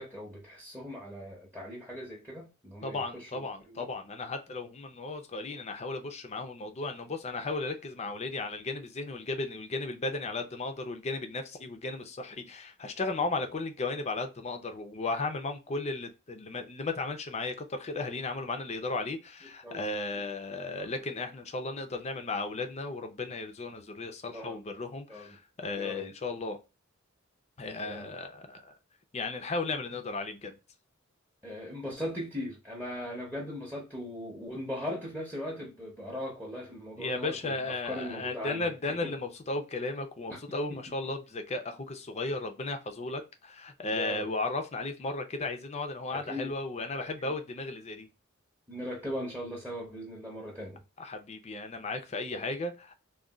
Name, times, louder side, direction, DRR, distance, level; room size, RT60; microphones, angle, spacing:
voice 1, 0.0-3.9 19.6-19.8 20.7-20.9 24.3-24.6 25.1-25.4 25.7-26.1 27.8-28.1 31.4-39.1 40.3-40.4 40.7-40.8 43.9-44.3 46.1-46.5 47.0-47.1 48.7-50.8 52.3-52.5, equal, 10° right, 0.7 m, -39 dB
voice 2, 2.8-26.6 27.6-28.7 29.1-30.5 37.0-48.1 51.0-52.9, left 3 dB, 35° left, 0.5 m, -35 dB
3.7 x 2.3 x 2.3 m
head